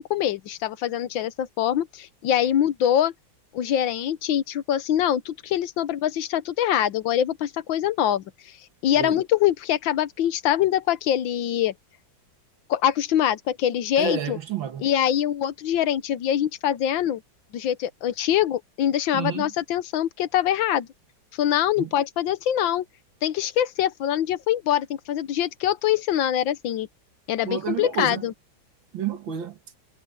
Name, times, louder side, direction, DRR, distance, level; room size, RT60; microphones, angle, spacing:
voice 1, 0.0-3.1 3.5-8.2 8.8-11.7 12.7-14.4 14.8-17.2 17.5-20.9 21.4-22.9 23.2-26.9 27.3-28.3, left 11 dB, 75° left, 1.6 m, -24 dB
voice 2, 14.0-14.9 19.1-19.5 21.8-21.9 27.4-28.2 28.9-29.6, right 9 dB, 75° right, 2.3 m, -30 dB
omnidirectional pair, 2.1 m